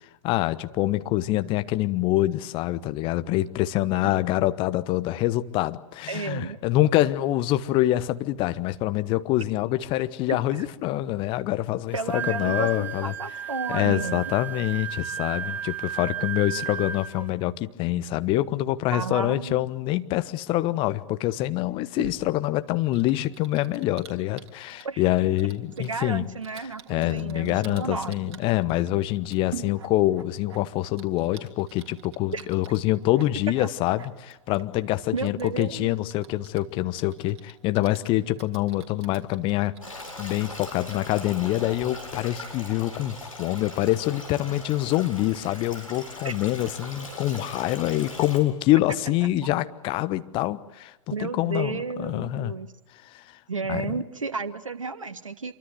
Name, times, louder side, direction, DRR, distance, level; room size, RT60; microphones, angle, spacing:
voice 1, 0.2-13.1 13.7-26.3 26.6-52.5 53.0-53.2 53.7-54.0, left 15 dB, 30° left, 12 dB, 1.2 m, -25 dB
voice 2, 6.1-6.6 10.3-10.4 11.9-14.2 18.9-19.7 24.8-25.0 25.8-28.4 32.3-32.4 35.1-35.9 46.2-46.3 49.2-49.3 51.1-52.7 53.5-55.5, right 4 dB, 75° right, 9 dB, 1.6 m, -32 dB
Wind instrument woodwind instrument, 11.9-17.3, right 9 dB, 10° right, 2.3 m, -33 dB
Typing, 22.0-41.8, right 7 dB, 50° right, 3.2 m, -49 dB
Stream, 39.8-48.4, left 2 dB, 90° left, 7.9 m, -40 dB
27.0 x 24.0 x 7.9 m, 1.0 s
figure-of-eight pair, 105°, 17 cm